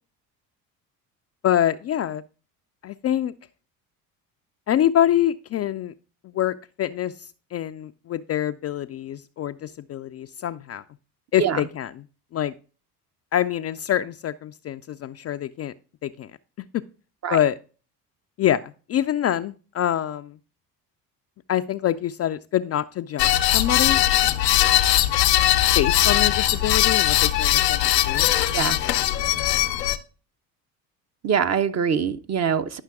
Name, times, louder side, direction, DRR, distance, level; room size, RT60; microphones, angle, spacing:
voice 1, 1.4-2.2 2.8-3.3 4.7-5.9 6.3-7.1 7.5-10.8 11.3-11.9 12.3-12.5 13.3-15.7 16.0-16.3 16.7-16.8 17.3-17.5 18.4-20.3 21.5-24.0 25.8-28.3, left 11 dB, 35° left, 0.4 m, -25 dB
sound 1, 23.2-30.0, left 13 dB, 90° left, 0.8 m, -20 dB
voice 2, 31.2-32.8, right 7 dB, 35° right, 0.7 m, -23 dB
10.5 x 5.7 x 3.5 m
hypercardioid pair, 65°, 48 cm